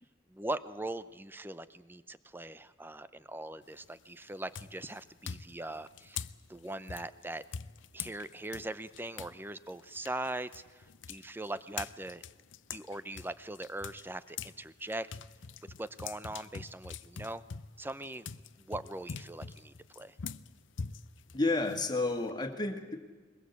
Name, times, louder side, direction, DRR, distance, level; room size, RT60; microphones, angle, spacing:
voice 1, 0.3-7.4 7.9-12.2 12.7-15.1 15.8-17.4 17.8-18.3 18.6-20.2, right 2 dB, 10° right, 14 dB, 0.7 m, -41 dB
sound 1, 3.6-4.0 4.5-9.4 9.7-14.6 14.9-22.3, left 6 dB, 80° left, 0.6 m, -44 dB
voice 2, 21.3-23.0, left 2 dB, 20° left, 5 dB, 1.9 m, -31 dB
22.5 x 21.0 x 8.2 m, 1.4 s
head